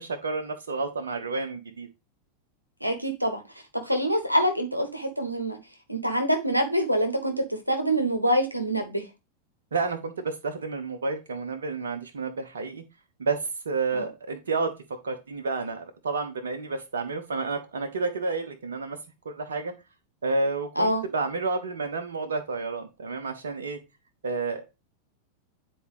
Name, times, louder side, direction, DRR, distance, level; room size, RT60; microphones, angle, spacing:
voice 1, 0.0-1.9 9.7-12.8 13.2-14.7 15.0-19.0 19.2-19.7 20.2-23.8 24.2-24.6, right 3 dB, 65° right, 1.1 m, -30 dB
voice 2, 2.8-3.4 3.8-5.6 5.9-9.0 13.9-14.1 20.8-21.0, equal, 90° right, 1.2 m, -25 dB
9.9 x 4.3 x 3.1 m
figure-of-eight pair, 90°, 0 cm